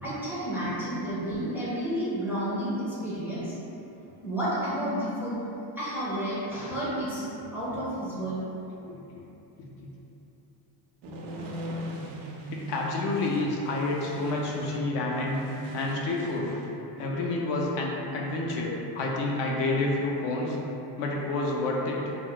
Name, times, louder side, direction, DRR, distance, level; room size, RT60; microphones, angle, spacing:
voice 1, 0.0-3.5 4.2-5.4 5.8-8.4, right 1 dB, 5° right, -11 dB, 0.4 m, -31 dB
voice 2, 8.9-9.2 9.6-9.7 12.5-15.4 15.7-16.5 17.0-20.6 21.0-22.1, left 2 dB, 60° left, -2 dB, 0.5 m, -29 dB
sound 1, 11.0-16.7, equal, 85° right, 0.6 m, -38 dB
2.2 x 2.1 x 3.7 m, 3.0 s
cardioid pair, 130°, 47 cm